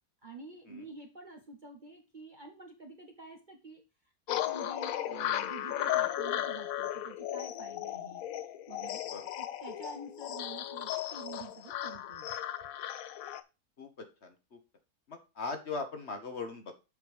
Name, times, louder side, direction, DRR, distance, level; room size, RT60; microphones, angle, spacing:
voice 1, 0.2-3.8 4.3-9.0 9.4-12.3, right 3 dB, 35° right, 3 dB, 0.9 m, -48 dB
sound 1, 4.3-13.4, left 12 dB, 65° left, 1.0 m, -35 dB
voice 2, 13.8-14.6 15.1-16.7, left 4 dB, 45° left, 6 dB, 1.3 m, -40 dB
6.9 x 5.0 x 5.0 m, 0.28 s
omnidirectional pair, 1.7 m